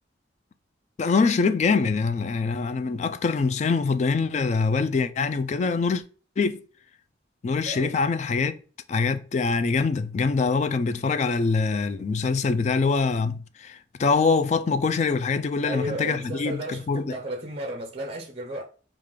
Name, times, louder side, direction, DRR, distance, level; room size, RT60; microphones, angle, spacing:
voice 1, 1.0-6.0 6.4-6.6 7.4-8.6 8.9-17.1, left 4 dB, 40° left, 0.3 m, -24 dB
voice 2, 15.6-18.6, right 1 dB, 35° right, 0.5 m, -34 dB
4.9 x 2.4 x 3.6 m
head